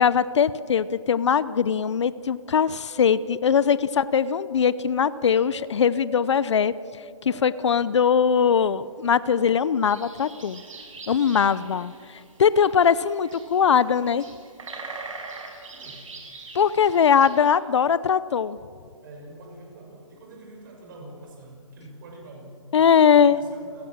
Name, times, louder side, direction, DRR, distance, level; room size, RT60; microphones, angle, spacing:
voice 1, 0.0-6.7 7.2-10.6 11.1-11.9 12.4-14.2 16.5-18.6 22.7-23.4, left 7 dB, 55° left, 17 dB, 0.7 m, -21 dB
sound 1, 2.9-12.3 12.6-13.4 13.8-14.7 15.1-15.2, right 2 dB, 10° right, 3.0 m, -46 dB
sound 2, 9.8-17.5, right 4 dB, 70° right, 5.9 m, -42 dB
voice 2, 15.7-16.1 19.0-22.6 23.1-23.9, right 2 dB, 40° right, 1 dB, 6.1 m, -45 dB
30.0 x 16.0 x 7.4 m, 2.2 s
hypercardioid pair, 170°, 17 cm